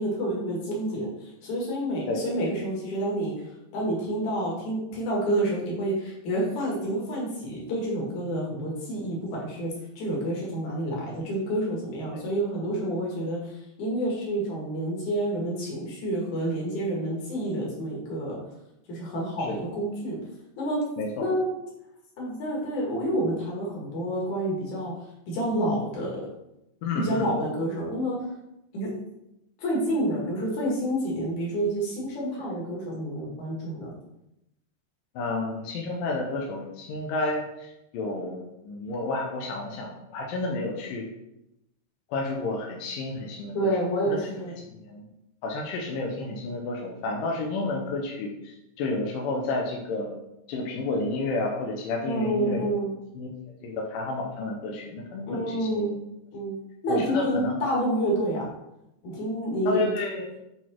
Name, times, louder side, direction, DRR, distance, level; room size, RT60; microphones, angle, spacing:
voice 1, 0.0-3.3 3.7-18.4 18.9-20.2 20.6-20.8 21.2-21.5 22.2-24.9 25.3-26.2 27.0-28.2 28.7-28.9 29.6-33.9 43.5-44.5 52.0-52.9 55.3-55.9 56.3-56.5 56.8-58.5 59.0-59.8, right 1 dB, 50° left, -3 dB, 3.0 m, -28 dB
voice 2, 21.0-21.3 26.8-27.3 35.2-41.1 42.1-43.7 44.1-44.2 44.7-45.0 45.4-50.1 50.5-52.8 53.2-53.3 53.6-56.0 56.9-57.5 59.7-60.3, left 2 dB, 80° left, 0 dB, 2.0 m, -31 dB
8.6 x 4.0 x 4.5 m, 0.86 s
omnidirectional pair, 5.1 m